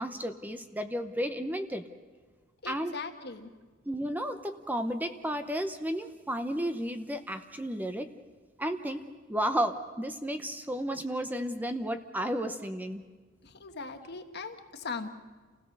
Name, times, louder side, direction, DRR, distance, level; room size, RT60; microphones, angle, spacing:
voice 1, 0.0-1.8 2.7-3.0 3.9-8.1 8.6-13.0, equal, 10° right, 8 dB, 0.8 m, -33 dB
voice 2, 2.6-3.5 13.4-15.1, left 4 dB, 55° left, 6 dB, 1.4 m, -39 dB
28.5 x 16.5 x 6.6 m, 1.4 s
head